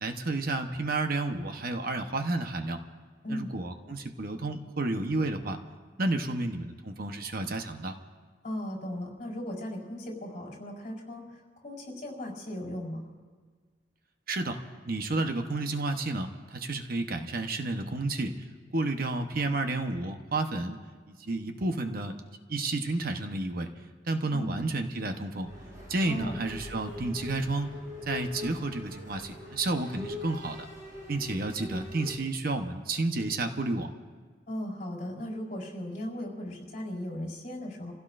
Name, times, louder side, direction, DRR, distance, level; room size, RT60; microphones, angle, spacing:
voice 1, 0.0-2.8 3.3-5.6 6.0-8.0 14.3-18.3 18.7-20.8 21.2-22.2 22.5-23.7 24.1-25.5 25.9-27.7 28.1-30.7 31.1-33.9, right 2 dB, 55° right, 6 dB, 1.0 m, -31 dB
voice 2, 8.4-13.0 24.3-24.5 26.0-26.4 34.5-37.9, left 1 dB, 45° left, -3 dB, 4.4 m, -37 dB
sound 1, 25.4-32.2, left 2 dB, 20° right, 6.0 m, -43 dB
29.5 x 16.0 x 2.6 m, 1.5 s
head